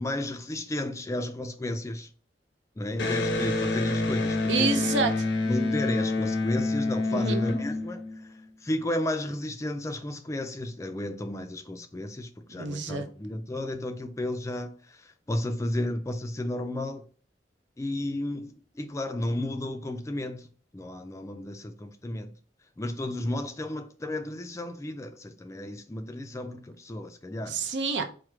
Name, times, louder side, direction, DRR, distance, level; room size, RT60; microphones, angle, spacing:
voice 1, 0.0-2.1 2.8-4.9 5.4-8.0 8.3-17.1 17.8-20.5 20.7-22.3 22.8-27.6, left 1 dB, 15° left, 0.3 m, -33 dB
Electric guitar, 3.0-8.4, left 2 dB, 75° left, 0.6 m, -27 dB
voice 2, 4.5-5.2 7.1-7.4 12.6-13.1 27.5-28.0, right 4 dB, 75° right, 0.7 m, -28 dB
4.7 x 2.1 x 4.5 m
head